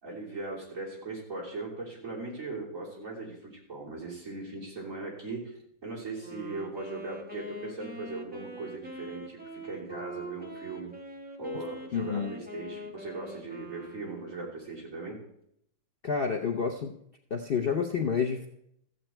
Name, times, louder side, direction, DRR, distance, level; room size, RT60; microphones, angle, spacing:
voice 1, 0.0-5.5 5.8-10.9 11.4-15.2, right 3 dB, 40° right, -4 dB, 3.5 m, -39 dB
Wind instrument woodwind instrument, 6.2-14.5, equal, 5° right, 1.0 m, -44 dB
voice 2, 11.9-12.3 16.0-16.9 17.3-18.5, left 6 dB, 85° left, 2 dB, 0.5 m, -29 dB
14.0 x 8.0 x 4.4 m, 0.75 s
omnidirectional pair, 2.0 m